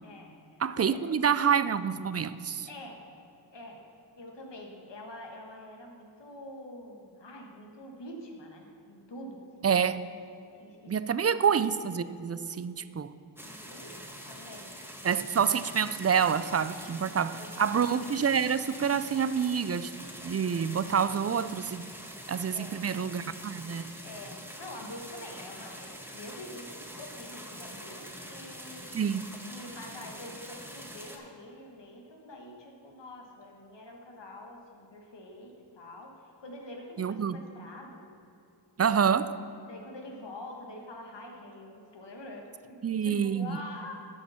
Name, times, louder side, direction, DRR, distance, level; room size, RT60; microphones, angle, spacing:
voice 1, 0.0-1.0 2.7-3.0 3.5-3.8 4.1-9.7 10.5-11.4 13.4-14.0 14.3-15.1 17.1-17.9 22.5-22.9 24.0-29.0 29.4-38.1 39.6-43.9, left 1 dB, 80° left, 1 dB, 1.5 m, -46 dB
voice 2, 0.6-2.7 9.6-10.0 10.9-13.1 15.0-19.9 20.2-21.9 22.3-23.9 28.9-29.3 37.0-37.4 38.8-39.4 42.8-43.6, right 7 dB, 40° right, 14 dB, 0.4 m, -27 dB
sound 1, 13.4-31.2, equal, 5° right, 1.3 m, -45 dB
11.5 x 6.4 x 5.7 m, 2.6 s
wide cardioid pair, 60°, 42 cm